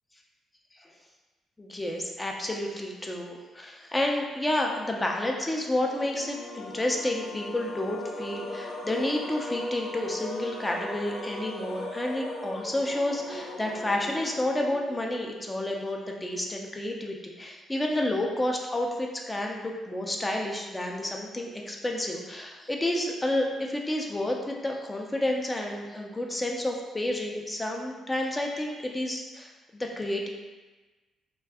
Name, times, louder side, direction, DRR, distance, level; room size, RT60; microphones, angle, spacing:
voice 1, 1.6-30.3, left 1 dB, 15° left, 0 dB, 0.4 m, -30 dB
sound 1, 5.7-15.1, left 1 dB, 75° left, 0.5 m, -38 dB
2.6 x 2.3 x 3.4 m, 1.2 s
cardioid pair, 90°, 0 cm